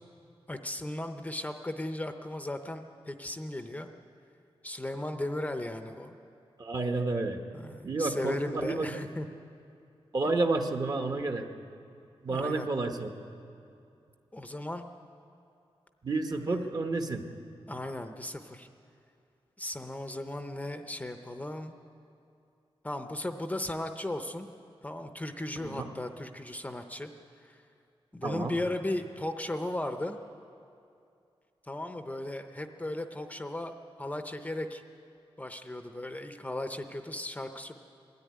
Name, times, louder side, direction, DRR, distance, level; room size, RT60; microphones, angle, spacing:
voice 1, 0.5-3.9 4.6-6.2 7.5-9.3 12.3-12.7 14.3-14.9 16.5-16.6 17.7-18.7 19.6-21.8 22.8-24.5 24.8-27.1 27.4-27.6 28.1-30.2 31.6-34.8 35.4-37.7, left 1 dB, 15° left, 7 dB, 0.7 m, -36 dB
voice 2, 6.6-7.4 7.8-9.0 10.1-11.5 12.2-13.1 16.0-17.2 25.6-25.9 28.2-28.5, right 3 dB, 40° right, 5 dB, 1.1 m, -30 dB
20.5 x 13.5 x 9.4 m, 2.6 s
wide cardioid pair, 170°, 10 cm